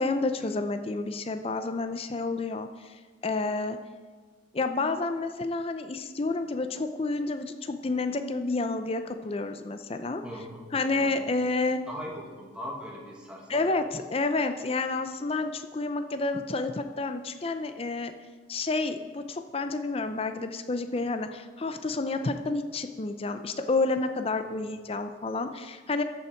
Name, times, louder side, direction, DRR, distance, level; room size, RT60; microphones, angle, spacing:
voice 1, 0.0-3.8 4.5-10.2 10.7-11.8 13.5-18.1 18.5-26.0, left 3 dB, 30° left, 8 dB, 0.5 m, -30 dB
voice 2, 10.2-11.3 11.9-13.8 24.4-24.7, equal, 5° right, -1 dB, 1.5 m, -41 dB
13.5 x 5.7 x 4.5 m, 1.5 s
head